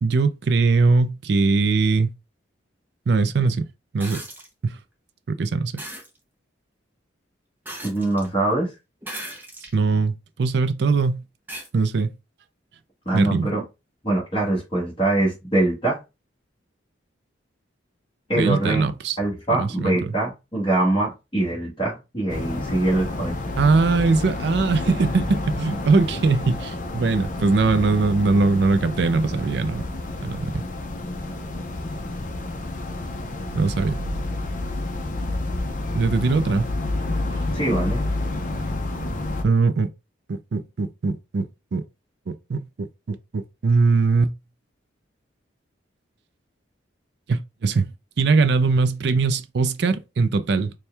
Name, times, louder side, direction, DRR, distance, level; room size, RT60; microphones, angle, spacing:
voice 1, 0.0-2.1 3.1-3.7 3.9-4.2 4.6-4.8 5.3-5.8 9.7-11.2 11.7-12.1 13.1-13.5 18.4-19.1 19.6-20.1 23.6-29.8 30.2-30.6 33.5-34.0 35.9-36.7 39.4-39.9 40.3-41.8 42.5-44.3 47.3-50.7, right 4 dB, 60° right, 0.4 m, -21 dB
sound 1, 4.0-4.5 5.8-6.1 7.7-8.3 9.0-9.8 10.4-10.5 11.5-11.7 13.2-13.3, right 1 dB, 10° right, 0.6 m, -36 dB
voice 2, 7.8-8.8 13.0-13.6 14.0-16.0 18.3-18.8 19.2-23.3 37.5-38.0, right 2 dB, 25° left, 1.4 m, -23 dB
sound 2, 22.3-39.4, left 2 dB, 40° left, 0.6 m, -29 dB
4.3 x 2.2 x 3.3 m
head